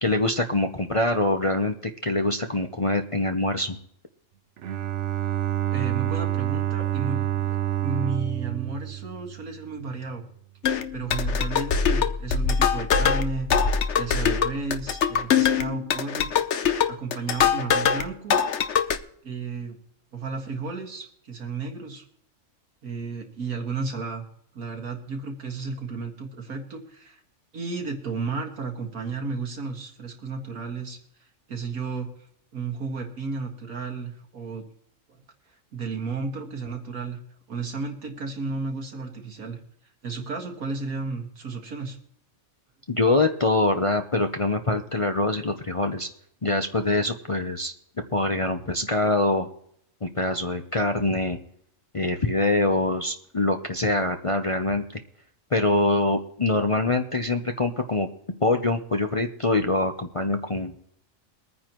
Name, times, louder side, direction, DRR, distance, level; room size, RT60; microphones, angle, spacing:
voice 1, 0.0-3.8 42.9-46.1 46.4-47.7 48.1-49.5 50.0-51.4 51.9-54.8 55.5-58.1 58.4-60.7, left 2 dB, 30° left, 5 dB, 0.6 m, -24 dB
Bowed string instrument, 4.6-9.8, right 13 dB, 60° right, 0.9 m, -28 dB
voice 2, 5.7-10.3 10.9-16.3 16.9-18.4 19.2-19.8 20.1-22.0 22.8-24.2 24.5-27.2 27.5-31.0 31.5-32.1 32.5-34.6 35.1-35.2 35.7-37.2 37.5-39.6 40.0-42.0, right 4 dB, 85° right, 3 dB, 2.3 m, -33 dB
sound 1, 10.6-18.0 18.3-19.0, left 7 dB, 60° left, 1.0 m, -23 dB
23.0 x 9.6 x 3.0 m, 0.70 s
omnidirectional pair, 1.5 m